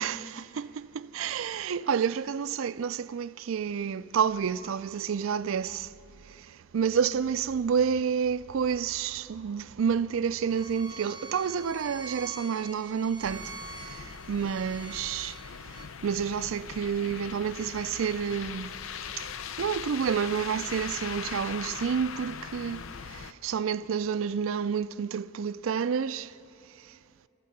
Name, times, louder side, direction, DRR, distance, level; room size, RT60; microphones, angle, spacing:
voice 1, 0.0-5.9 6.3-6.5 6.7-15.4 16.0-18.7 19.2-19.3 19.6-22.8 23.1-26.3, right 7 dB, 75° right, 0.4 m, -29 dB
Bowed string instrument, 10.5-15.9, right 3 dB, 20° right, 0.7 m, -45 dB
sound 1, 13.2-23.3, left 7 dB, 75° left, 0.6 m, -40 dB
27.5 x 14.5 x 6.6 m
head